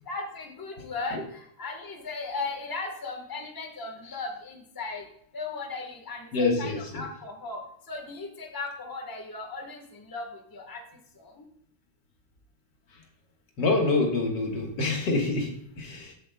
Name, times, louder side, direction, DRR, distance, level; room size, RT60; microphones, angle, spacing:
voice 1, 0.1-5.0 5.3-7.6 7.9-10.2 10.5-10.8 11.2-11.4, left 3 dB, 15° left, 1.0 m, -37 dB
voice 2, 6.3-7.1 12.9-13.0 13.6-16.1, left 3 dB, 60° left, 2.0 m, -26 dB
13.0 x 7.6 x 2.2 m
omnidirectional pair, 2.3 m